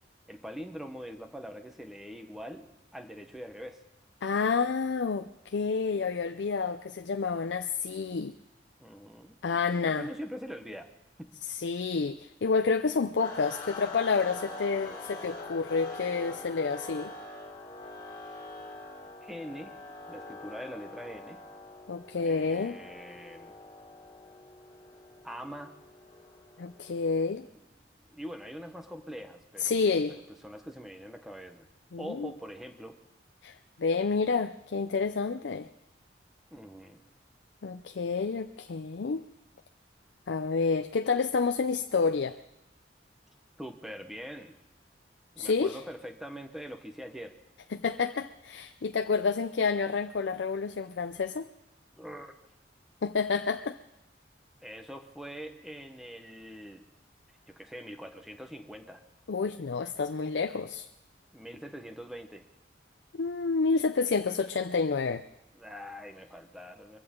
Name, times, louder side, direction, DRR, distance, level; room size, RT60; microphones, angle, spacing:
voice 1, 0.3-2.7 2.9-3.8 8.8-10.9 11.2-11.3 19.2-19.7 20.1-21.4 22.2-23.5 25.2-25.8 27.4-27.7 28.1-31.7 32.0-33.0 36.5-37.0 43.6-44.6 45.4-47.3 52.0-52.3 54.6-56.8 57.5-59.0 61.3-62.4 65.5-67.0, equal, ahead, 5 dB, 1.0 m, -43 dB
voice 2, 4.2-8.3 9.4-10.1 11.4-17.1 21.9-22.8 26.6-27.5 29.6-30.1 31.9-32.3 33.4-35.7 37.6-39.2 40.3-42.4 45.4-45.8 47.7-51.5 53.0-53.8 59.3-60.9 63.2-65.2, left 4 dB, 80° left, 9 dB, 0.5 m, -29 dB
sound 1, 13.2-27.3, left 2 dB, 30° left, 3.2 m, -44 dB
23.0 x 15.5 x 3.7 m, 0.91 s
head